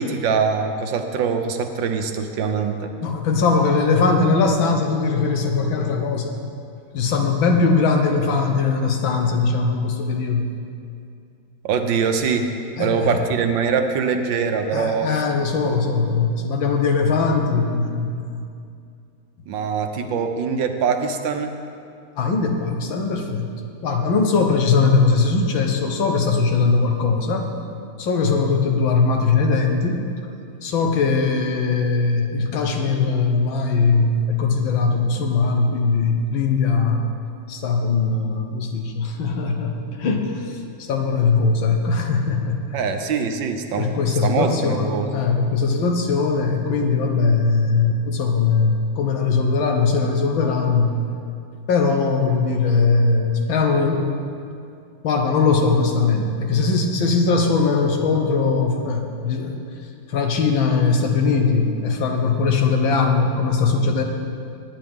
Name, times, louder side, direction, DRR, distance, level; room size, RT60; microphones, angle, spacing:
voice 1, 0.0-2.9 11.6-12.5 12.8-15.2 19.5-21.5 42.7-43.9 44.2-45.1, right 6 dB, 75° right, 6 dB, 1.5 m, -23 dB
voice 2, 3.0-6.4 6.9-10.5 12.8-13.2 14.7-18.5 22.2-23.5 23.8-27.5 28.0-30.0 30.6-37.1 37.5-42.8 43.8-51.0 51.7-54.1 55.0-59.6 60.1-64.0, left 4 dB, 80° left, 3 dB, 1.9 m, -20 dB
19.5 x 8.9 x 3.6 m, 2.4 s
omnidirectional pair, 2.1 m